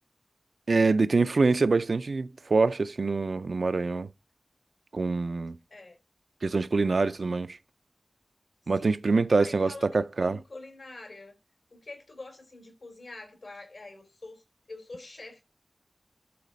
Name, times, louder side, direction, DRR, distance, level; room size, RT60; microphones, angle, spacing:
voice 1, 0.7-4.1 4.9-5.6 6.4-7.6 8.7-10.4, right 3 dB, 85° right, 0.4 m, -25 dB
voice 2, 5.7-6.0 8.7-9.0 9.4-11.4 11.7-15.4, left 2 dB, 90° left, 3.8 m, -46 dB
11.5 x 4.0 x 4.0 m
wide cardioid pair, 50°, 0 cm